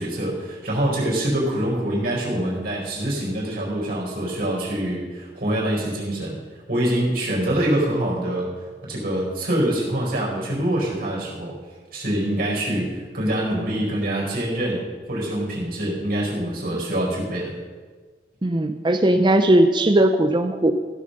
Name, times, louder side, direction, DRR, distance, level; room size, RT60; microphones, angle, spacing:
voice 1, 0.0-6.4 6.7-8.5 8.8-11.5 11.9-17.5, right 1 dB, 55° right, -2 dB, 4.4 m, -25 dB
voice 2, 18.4-20.7, right 1 dB, 25° right, 7 dB, 0.5 m, -18 dB
15.0 x 7.1 x 6.5 m, 1.4 s
head